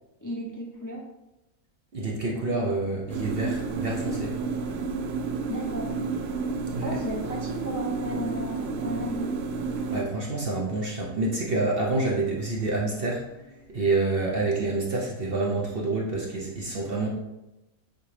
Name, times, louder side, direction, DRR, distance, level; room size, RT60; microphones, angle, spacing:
voice 1, 0.2-1.1 5.5-6.0 6.8-9.4, equal, 20° left, -3 dB, 0.6 m, -34 dB
voice 2, 1.9-4.4 6.7-7.0 9.9-17.1, right 2 dB, 45° right, -2 dB, 0.9 m, -28 dB
sound 1, 3.1-10.0, right 4 dB, 70° right, 0.6 m, -31 dB
8.0 x 3.6 x 3.3 m, 0.95 s
omnidirectional pair, 1.6 m